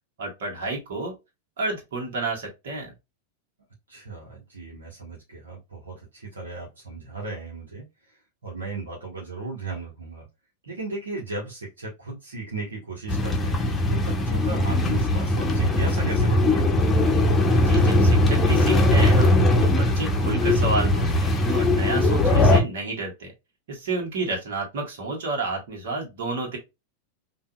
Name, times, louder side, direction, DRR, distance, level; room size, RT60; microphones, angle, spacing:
voice 1, 0.2-1.1 1.6-2.9 17.6-23.3 23.7-26.6, right 3 dB, 55° right, 1.7 m, -30 dB
voice 2, 3.9-7.8 8.4-10.3 10.6-16.7 22.3-22.4, right 3 dB, 75° right, 1.4 m, -36 dB
sound 1, 13.1-22.6, left 1 dB, 15° left, 0.9 m, -20 dB
5.4 x 2.7 x 2.4 m
figure-of-eight pair, 90°, 0 cm